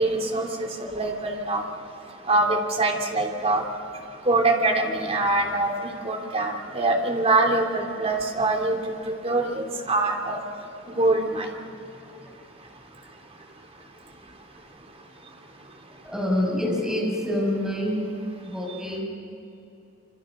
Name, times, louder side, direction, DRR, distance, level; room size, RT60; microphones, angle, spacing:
voice 1, 0.0-1.6 2.3-3.6 4.3-10.4 11.0-11.5, right 2 dB, 35° right, 1 dB, 3.2 m, -24 dB
voice 2, 16.1-18.0 18.4-19.0, left 1 dB, 5° right, -3 dB, 7.2 m, -26 dB
27.0 x 27.0 x 6.8 m, 2.8 s
head